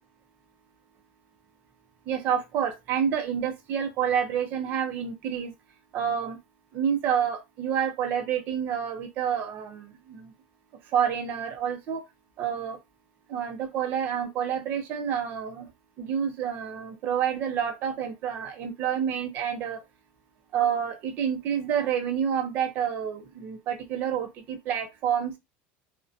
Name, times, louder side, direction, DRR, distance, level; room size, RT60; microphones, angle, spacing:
voice 1, 2.1-5.5 5.9-6.4 6.7-10.3 10.8-12.0 12.4-12.8 13.3-15.7 16.0-19.8 20.5-25.3, right 8 dB, 35° right, 0.5 m, -28 dB
2.6 x 2.1 x 2.4 m
cardioid pair, 175°, 6 cm